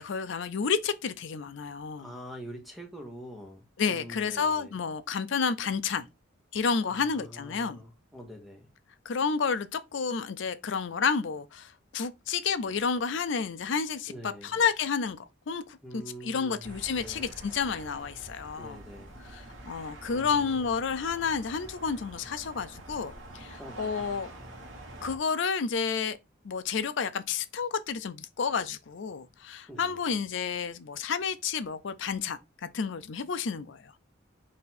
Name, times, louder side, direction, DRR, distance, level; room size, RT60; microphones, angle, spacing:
voice 1, 0.0-2.1 3.8-6.1 6.5-7.8 9.1-15.2 15.5-18.8 19.3-24.3 25.0-26.2 26.4-33.9, left 5 dB, 60° left, 0.5 m, -30 dB
voice 2, 2.0-4.7 6.9-8.7 14.1-14.6 15.8-17.3 18.6-19.2 20.1-20.8 23.6-24.1 29.7-30.0, equal, ahead, 1.0 m, -45 dB
sound 1, 16.6-25.2, right 1 dB, 65° right, 1.2 m, -46 dB
4.2 x 2.6 x 4.1 m
head